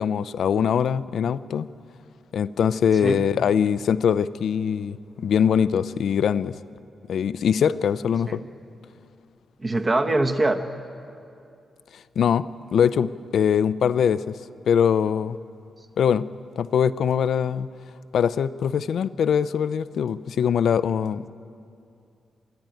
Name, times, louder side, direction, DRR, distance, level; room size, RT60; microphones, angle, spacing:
voice 1, 0.0-1.7 2.3-6.5 7.1-8.4 12.2-12.5 12.7-14.3 14.7-15.4 16.0-16.3 16.6-17.7 18.1-21.3, left 8 dB, 75° left, 15 dB, 0.5 m, -22 dB
voice 2, 9.6-10.6, right 2 dB, 25° right, 5 dB, 1.0 m, -23 dB
25.5 x 11.0 x 9.2 m, 2.5 s
wide cardioid pair, 120°, 0 cm